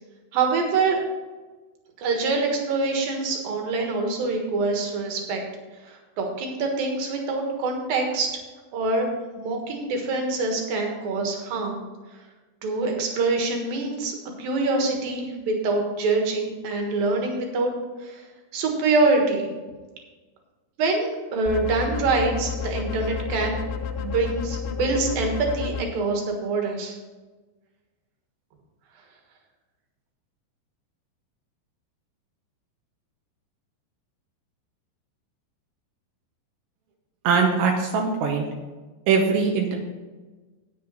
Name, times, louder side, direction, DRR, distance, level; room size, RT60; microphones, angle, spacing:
voice 1, 0.3-1.0 2.0-5.4 5.9-8.3 8.7-9.1 9.4-11.8 12.6-17.7 18.0-18.2 18.5-19.5 20.8-23.6 24.0-26.9, right 3 dB, 60° right, 2 dB, 2.9 m, -25 dB
sound 1, 21.5-25.8, left 6 dB, 85° left, 3.1 m, -31 dB
voice 2, 37.2-38.5 39.1-39.8, right 5 dB, 85° right, 1 dB, 3.3 m, -21 dB
10.0 x 9.0 x 4.6 m, 1.3 s
omnidirectional pair, 5.2 m